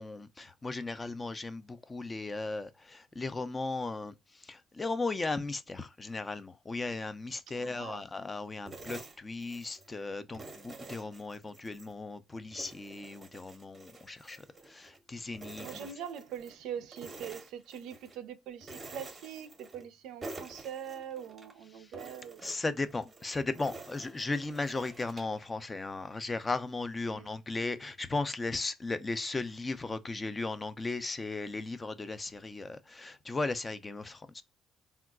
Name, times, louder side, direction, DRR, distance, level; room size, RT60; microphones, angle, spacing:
voice 1, 0.0-15.8 21.7-21.9 22.4-34.4, left 3 dB, 20° left, 0.3 m, -36 dB
voice 2, 7.5-8.0 15.6-22.4 27.0-27.3, right 9 dB, 80° right, 0.4 m, -43 dB
sound 1, 8.7-9.9 10.3-11.9 12.3-15.0 15.3-16.6 16.9-18.2 18.6-19.9 20.2-21.5 21.9-25.4, right 3 dB, 25° right, 0.6 m, -48 dB
3.5 x 2.3 x 2.2 m
cardioid pair, 120°, 0 cm